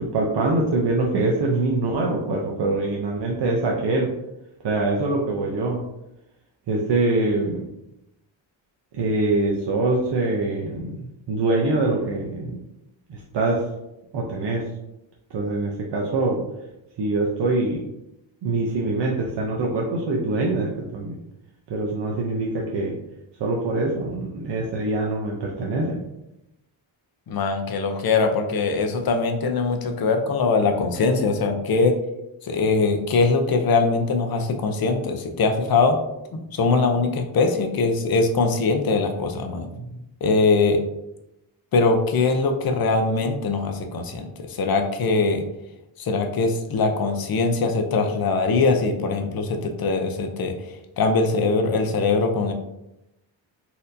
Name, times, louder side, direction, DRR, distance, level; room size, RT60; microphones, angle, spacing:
voice 1, 0.0-4.1 4.6-5.8 6.7-7.6 8.9-12.6 13.1-13.7 14.1-14.7 15.3-16.4 17.0-17.8 18.4-21.2 21.7-22.9 23.4-26.0 39.6-40.0, right 2 dB, 60° right, -2 dB, 0.6 m, -24 dB
voice 2, 27.3-32.0 32.4-36.0 36.5-39.7 40.2-40.8 41.7-45.4 46.0-50.5 51.0-52.5, left 4 dB, 50° left, 5 dB, 0.5 m, -22 dB
4.2 x 2.6 x 2.6 m, 0.89 s
wide cardioid pair, 125°, 48 cm